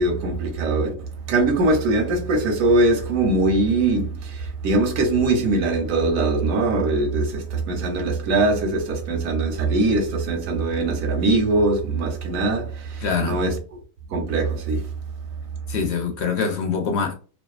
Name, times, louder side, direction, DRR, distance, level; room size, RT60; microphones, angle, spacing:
voice 1, 0.0-13.8 14.1-14.9, right 2 dB, 80° right, 1.1 m, -22 dB
voice 2, 13.0-13.4 15.7-17.1, left 5 dB, 65° left, 0.8 m, -24 dB
2.6 x 2.2 x 2.2 m
omnidirectional pair, 1.4 m